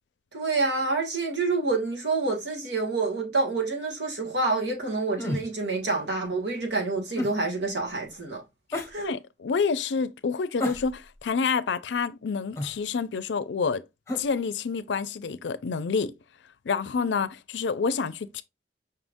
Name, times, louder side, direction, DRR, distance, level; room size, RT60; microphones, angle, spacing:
voice 1, 0.3-8.4 8.9-9.1, right 3 dB, 80° right, 1.7 m, -27 dB
Various male grunts, 5.2-5.5 7.2-7.4 8.7-8.9 10.6-11.2 12.6-12.8 14.1-14.3, left 1 dB, 15° left, 1.1 m, -31 dB
voice 2, 8.7-13.8 14.2-16.2 16.6-18.4, left 5 dB, 85° left, 0.4 m, -28 dB
5.5 x 3.6 x 2.5 m
head